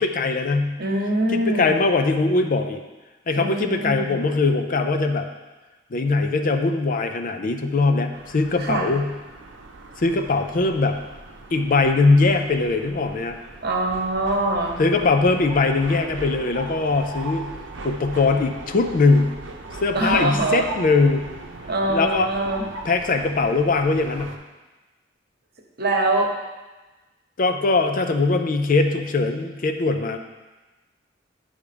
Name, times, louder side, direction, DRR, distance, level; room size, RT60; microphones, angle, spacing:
voice 1, 0.0-0.8 1.3-2.8 3.3-5.3 5.9-9.1 10.0-11.0 11.5-13.4 14.8-17.5 17.8-19.3 19.8-21.2 21.9-22.3 22.9-24.3 27.4-30.2, left 3 dB, 45° left, 6 dB, 0.5 m, -21 dB
voice 2, 0.8-1.7 3.4-4.1 8.6-8.9 13.6-14.8 19.9-20.7 21.6-22.6 25.8-26.3, right 2 dB, 55° right, 1 dB, 1.0 m, -23 dB
sound 1, 8.1-24.4, right 2 dB, 70° right, 0.7 m, -39 dB
9.6 x 3.6 x 5.0 m, 1.2 s
head